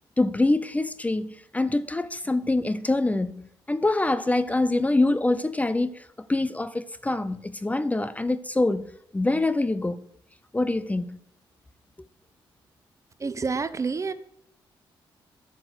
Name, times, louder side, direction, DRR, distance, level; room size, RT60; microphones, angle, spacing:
voice 1, 0.2-10.1 10.5-11.2, left 2 dB, 15° left, 0.6 m, -25 dB
voice 2, 13.2-14.1, right 4 dB, 35° right, 0.7 m, -28 dB
8.5 x 6.6 x 6.5 m
cardioid pair, 70°, 9 cm